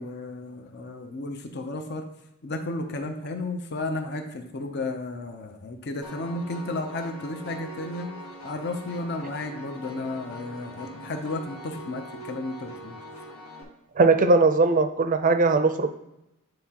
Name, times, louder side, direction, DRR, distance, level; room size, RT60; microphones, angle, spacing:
voice 1, 0.0-2.1 2.4-8.1 8.4-13.0, left 2 dB, 50° left, 5 dB, 0.7 m, -33 dB
Piano, 6.0-13.6, equal, 85° left, 1.3 m, -42 dB
voice 2, 14.0-15.9, right 3 dB, 40° right, 8 dB, 0.5 m, -19 dB
9.4 x 3.8 x 2.9 m, 0.89 s
head